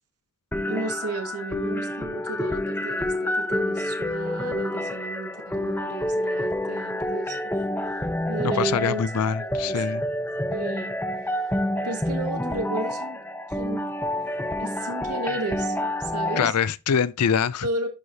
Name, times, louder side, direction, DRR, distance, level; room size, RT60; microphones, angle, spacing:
sound 1, 0.5-16.5, left 1 dB, 10° left, 0.7 m, -28 dB
voice 1, 0.6-7.6 8.3-10.0 10.5-11.0 11.8-13.2 13.5-13.9 14.6-16.5 17.6-17.9, right 3 dB, 85° right, 1.7 m, -33 dB
voice 2, 8.6-10.0 16.4-17.7, left 7 dB, 80° left, 0.5 m, -24 dB
11.5 x 4.8 x 2.7 m
head